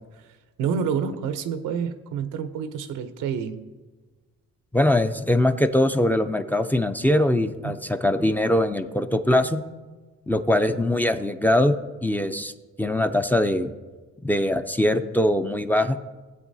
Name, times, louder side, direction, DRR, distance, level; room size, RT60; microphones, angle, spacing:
voice 1, 0.2-3.7 7.6-7.8, right 7 dB, 90° right, 0.7 m, -29 dB
voice 2, 4.7-9.6 10.3-12.5 12.8-13.7 14.2-16.0, left 1 dB, 5° left, 0.4 m, -22 dB
17.0 x 8.2 x 2.7 m
cardioid pair, 90°, 30 cm